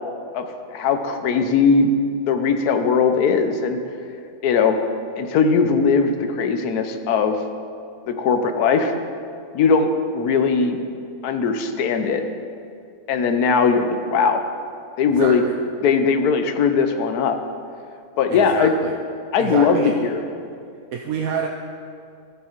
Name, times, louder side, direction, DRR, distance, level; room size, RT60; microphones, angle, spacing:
voice 1, 0.3-1.9 2.3-3.8 4.4-4.8 5.2-7.4 8.1-8.9 9.5-9.9 10.1-10.8 11.2-12.2 13.1-14.4 15.0-15.4 15.8-17.4 18.2-18.7 19.3-20.2, left 5 dB, 85° left, 7 dB, 1.2 m, -19 dB
voice 2, 15.1-15.5 18.3-18.9 19.4-19.9 20.9-21.5, right 6 dB, 70° right, 1 dB, 1.0 m, -28 dB
15.5 x 5.4 x 4.4 m, 2.3 s
omnidirectional pair, 1.6 m